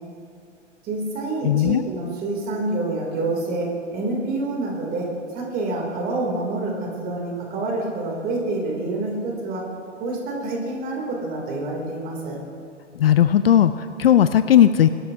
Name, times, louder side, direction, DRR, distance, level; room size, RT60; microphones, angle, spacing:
voice 1, 0.8-5.1 5.3-9.6 10.0-12.4, right 2 dB, 25° right, -1 dB, 3.1 m, -27 dB
voice 2, 1.4-1.8 13.0-14.9, left 10 dB, 50° left, 12 dB, 0.5 m, -16 dB
22.0 x 12.5 x 2.8 m, 2.4 s
figure-of-eight pair, 110°, 37 cm